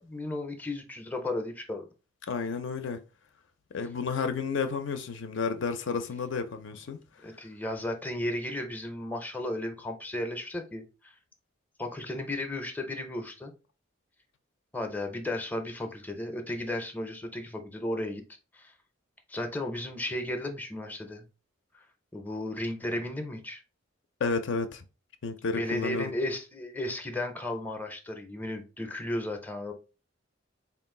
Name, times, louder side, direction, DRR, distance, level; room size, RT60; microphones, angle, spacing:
voice 1, 0.0-1.9 7.2-11.1 11.8-13.5 14.7-18.2 18.5-18.7 19.3-21.3 21.7-21.8 22.1-23.6 25.5-29.7, left 1 dB, 10° left, 0.5 m, -34 dB
voice 2, 2.3-3.0 3.7-7.0 24.2-24.8 25.2-26.1, left 5 dB, 65° left, 0.4 m, -31 dB
3.8 x 2.4 x 3.6 m
head